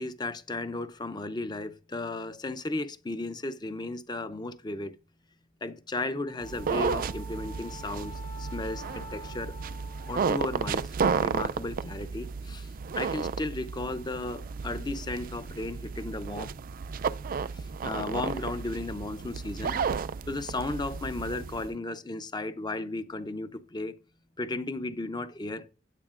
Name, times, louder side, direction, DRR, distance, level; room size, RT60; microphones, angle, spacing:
voice 1, 0.0-4.9 5.6-9.5 10.1-16.5 17.5-19.8 20.3-24.0 24.4-25.7, left 2 dB, 20° left, 0.6 m, -35 dB
Wind instrument woodwind instrument, 6.2-10.6, left 1 dB, 45° left, 2.3 m, -47 dB
sound 1, 6.4-21.7, right 5 dB, 45° right, 0.4 m, -33 dB
16.0 x 9.4 x 2.5 m
head